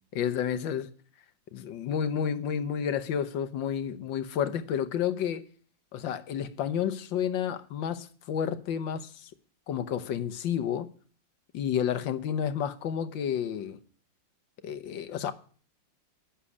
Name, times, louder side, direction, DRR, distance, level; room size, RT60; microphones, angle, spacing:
voice 1, 0.1-0.9 1.5-5.4 5.9-9.3 9.7-10.9 11.5-13.8 14.6-15.3, left 8 dB, 85° left, 1.7 m, -30 dB
11.5 x 7.5 x 9.7 m
omnidirectional pair, 2.0 m